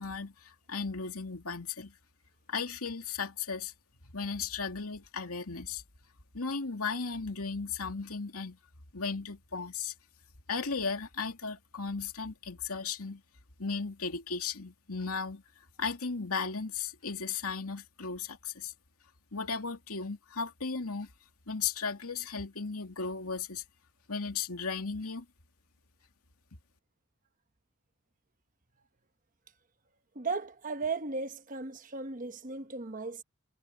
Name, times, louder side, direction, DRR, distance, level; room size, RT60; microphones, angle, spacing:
voice 1, 0.0-1.9 2.5-3.7 4.1-5.8 6.3-8.6 8.9-9.9 10.5-13.2 13.6-15.4 15.8-18.7 19.3-21.1 21.5-23.6 24.1-25.3, left 5 dB, 75° left, 2.6 m, -35 dB
voice 2, 30.1-33.2, right 4 dB, 35° right, 1.1 m, -36 dB
head